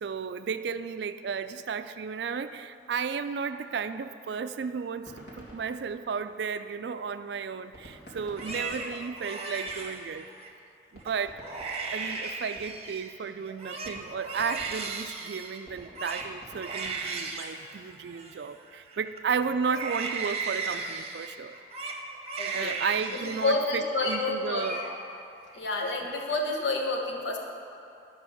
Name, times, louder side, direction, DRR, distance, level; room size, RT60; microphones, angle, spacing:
voice 1, 0.0-10.3 10.9-11.4 11.9-21.6 22.5-24.8, right 6 dB, 65° right, 11 dB, 0.4 m, -33 dB
sound 1, 5.0-6.7 7.7-10.2 10.5-10.6 10.9-13.0 13.4-13.5 13.8-17.5, equal, 55° left, 2.3 m, -50 dB
Crying sobbing, 8.2-10.5 11.0-11.2 11.4-13.1 13.4-19.2 19.6-23.6 23.8-24.2 24.5-25.2 25.6-26.2, right 4 dB, 35° right, 0.8 m, -36 dB
voice 2, 22.4-22.7 23.1-24.7 25.5-27.4, left 2 dB, 75° left, 1 dB, 1.2 m, -29 dB
11.5 x 5.4 x 6.4 m, 2.7 s
head